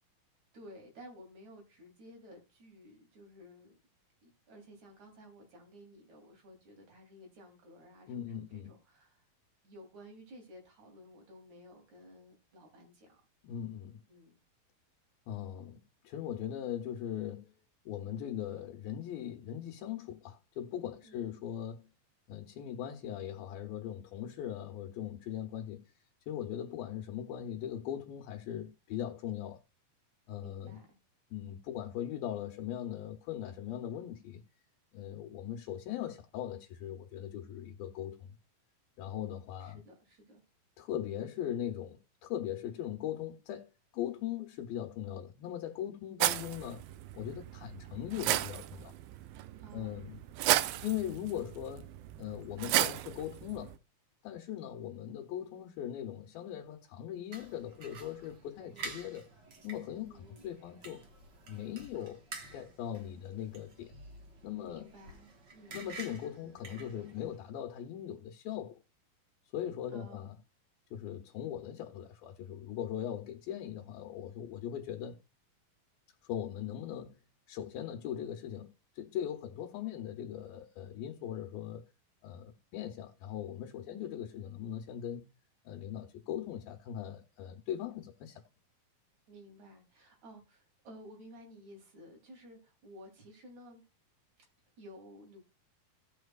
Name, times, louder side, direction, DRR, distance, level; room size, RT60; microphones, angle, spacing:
voice 1, 0.5-3.8 4.2-9.3 9.6-13.2 14.1-14.3 21.0-21.4 30.4-30.9 39.1-40.4 49.6-50.1 50.6-50.9 58.7-59.0 60.0-60.5 64.6-65.8 69.9-70.3 83.8-84.1 89.3-93.8 94.8-95.4, equal, 50° right, 4.4 m, -54 dB
voice 2, 8.1-8.7 13.4-14.0 15.3-17.5 17.9-21.9 22.3-25.8 26.3-29.6 30.3-30.8 31.3-34.4 34.9-38.3 39.0-39.8 40.8-46.8 47.1-48.9 49.7-50.2 50.8-53.7 54.2-59.3 59.6-61.1 61.5-62.2 62.5-63.9 64.4-64.9 65.7-68.8 69.5-70.4 70.9-75.2 76.3-81.9 82.2-85.3 85.6-88.4, left 10 dB, 80° left, 2.7 m, -40 dB
sound 1, 46.2-53.8, right 15 dB, 85° right, 2.5 m, -34 dB
sound 2, 57.3-67.4, right 3 dB, 65° right, 1.0 m, -49 dB
17.0 x 6.1 x 2.3 m
omnidirectional pair, 4.2 m